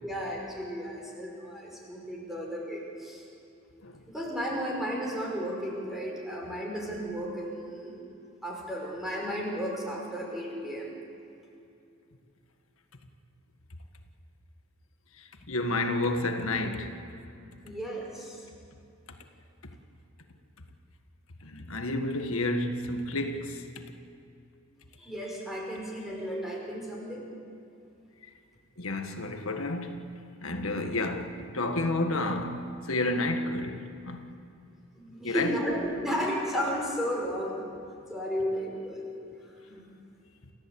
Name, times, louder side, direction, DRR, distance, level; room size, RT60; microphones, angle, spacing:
voice 1, 0.0-3.2 4.1-8.0 8.4-10.9 17.6-18.4 25.0-27.3 35.0-37.6 38.1-39.1 39.7-39.9, equal, ahead, 5.3 m, -33 dB
voice 2, 15.2-17.0 21.4-23.6 28.8-30.1 30.4-34.3 35.2-35.6, left 2 dB, 75° left, 1.8 m, -30 dB
29.5 x 15.0 x 8.7 m
head